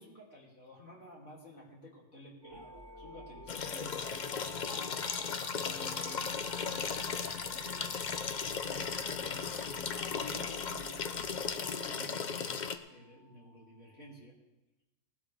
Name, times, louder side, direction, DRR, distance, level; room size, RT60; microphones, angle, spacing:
voice 1, 0.0-2.7 3.0-12.6 12.9-14.4, equal, 50° left, -4 dB, 3.3 m, -53 dB
sound 1, 2.4-14.1, left 1 dB, 25° left, 2.5 m, -54 dB
sound 2, 2.5-12.0, right 3 dB, 25° right, 0.7 m, -54 dB
sound 3, 3.5-12.8, left 6 dB, 70° left, 0.4 m, -36 dB
19.0 x 12.0 x 3.5 m, 1.0 s
omnidirectional pair, 1.6 m